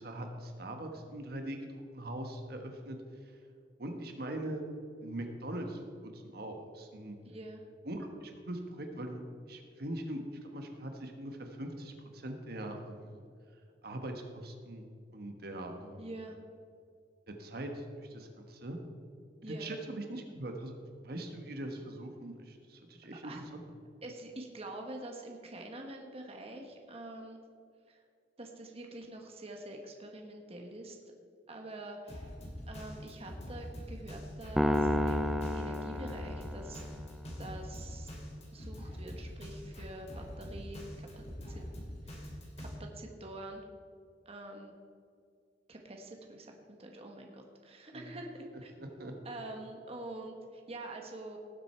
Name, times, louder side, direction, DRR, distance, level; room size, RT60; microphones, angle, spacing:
voice 1, 0.0-3.3 3.8-4.6 5.0-7.2 7.8-9.2 9.5-13.2 13.8-14.9 15.1-16.1 17.3-18.8 19.4-20.7 21.0-23.6 47.9-48.2 48.8-49.1, right 1 dB, 60° right, 4 dB, 1.3 m, -41 dB
voice 2, 7.2-7.6 16.0-16.4 19.4-19.7 23.2-23.4 24.0-27.4 27.9-28.0 28.4-31.0 31.5-32.3 32.7-37.1 37.4-38.1 38.5-41.6 42.0-43.7 44.2-44.7 45.7-51.4, right 2 dB, 35° right, 2 dB, 1.3 m, -46 dB
Drum kit, 32.1-42.7, equal, 35° left, 2.7 m, -44 dB
sound 1, 34.6-36.9, left 1 dB, 5° right, 0.4 m, -30 dB
18.5 x 7.7 x 4.4 m, 2.3 s
head